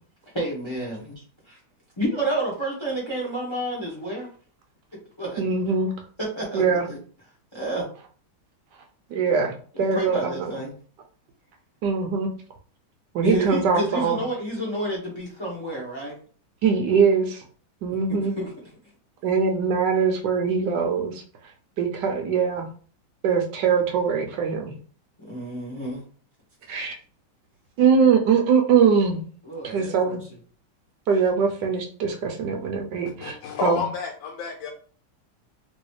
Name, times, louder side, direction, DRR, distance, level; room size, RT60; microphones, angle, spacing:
voice 1, 0.3-1.6 2.0-4.3 5.2-5.4 6.2-7.0 7.5-7.9 9.7-10.7 13.2-16.2 17.9-18.5 25.2-26.0 29.4-30.2, right 1 dB, 20° left, -4 dB, 0.7 m, -30 dB
voice 2, 5.4-5.9 6.5-6.9 9.1-9.5 9.8-10.3 11.8-12.3 13.1-14.2 16.6-17.4 17.8-18.3 19.2-21.2 21.8-22.7 23.2-24.7 26.7-26.9 27.8-29.2 29.6-30.2 31.1-33.4 33.6-33.8, right 6 dB, 75° right, 3 dB, 1.1 m, -22 dB
voice 3, 33.2-34.7, left 6 dB, 75° left, 3 dB, 1.2 m, -30 dB
3.1 x 3.0 x 3.2 m, 0.43 s
omnidirectional pair, 2.2 m